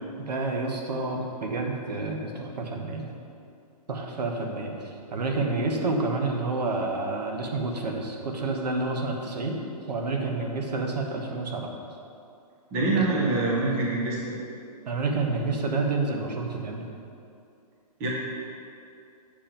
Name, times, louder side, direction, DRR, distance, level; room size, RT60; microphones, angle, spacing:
voice 1, 0.3-3.1 3.9-4.7 5.1-9.6 9.9-11.7 12.9-13.0 14.9-16.9, right 3 dB, 85° right, 2 dB, 1.3 m, -29 dB
voice 2, 12.7-14.4 18.0-18.1, right 2 dB, 10° right, -4 dB, 0.5 m, -25 dB
7.2 x 4.8 x 5.8 m, 2.5 s
hypercardioid pair, 175°, 21 cm